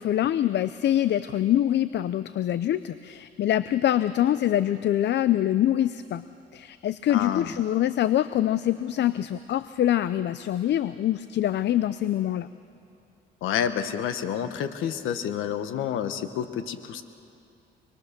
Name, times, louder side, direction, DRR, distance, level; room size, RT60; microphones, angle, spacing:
voice 1, 0.0-6.2 6.5-12.5, left 12 dB, 60° left, 14 dB, 0.6 m, -24 dB
voice 2, 7.1-7.5 13.4-17.0, left 9 dB, 85° left, 10 dB, 1.3 m, -29 dB
26.5 x 21.0 x 6.7 m, 2.7 s
cardioid pair, 90°, 20 cm